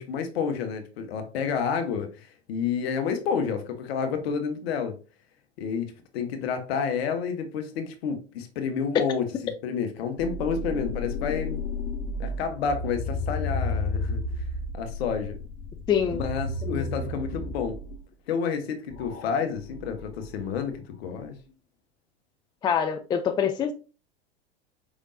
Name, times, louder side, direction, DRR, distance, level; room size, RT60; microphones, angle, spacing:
voice 1, 0.0-4.9 5.6-9.2 9.6-11.6 12.2-14.2 14.7-15.4 16.1-17.8 18.3-21.3, left 6 dB, 65° left, 1.1 m, -30 dB
sound 1, 10.2-18.0 18.9-20.7, left 2 dB, 30° left, 1.0 m, -32 dB
voice 2, 15.9-16.2 16.6-16.9 22.6-23.7, left 8 dB, 15° left, 0.3 m, -25 dB
4.9 x 3.5 x 2.6 m
hypercardioid pair, 90°, 33 cm